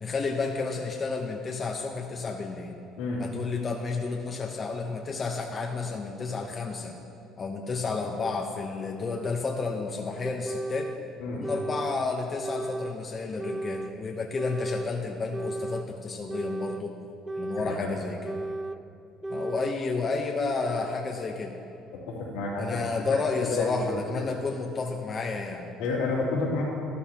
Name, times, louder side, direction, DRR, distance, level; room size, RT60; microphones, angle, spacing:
voice 1, 0.0-2.8 3.2-7.0 7.4-10.9 11.3-16.9 17.4-18.4 19.3-21.5 22.6-25.7, left 4 dB, 35° left, 2 dB, 0.9 m, -31 dB
sound 1, 8.2-8.3 9.2-9.3 10.2-11.0 11.4-12.0 12.4-13.0 13.4-13.9 14.4-14.9 15.3-15.9 16.3-16.9 17.3-17.8 18.2-18.8 19.2-19.8, right 2 dB, 15° right, 0.4 m, -34 dB
voice 2, 22.1-22.7 23.4-24.0 25.8-26.6, left 3 dB, 85° left, -4 dB, 2.9 m, -30 dB
13.0 x 13.0 x 3.0 m, 2.6 s
supercardioid pair, 80°, 0 cm